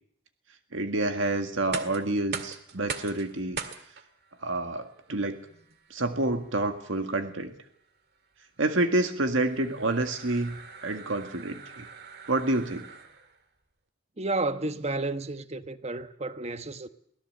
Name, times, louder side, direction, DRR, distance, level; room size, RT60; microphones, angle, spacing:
voice 1, 0.7-3.6 4.4-5.4 5.9-7.5 8.6-11.9 12.3-12.9, right 2 dB, 85° right, 1.9 m, -28 dB
sound 1, 1.5-13.4, right 5 dB, 55° right, 1.9 m, -43 dB
voice 2, 14.2-16.9, right 2 dB, 35° right, 1.1 m, -31 dB
24.0 x 17.5 x 7.8 m
head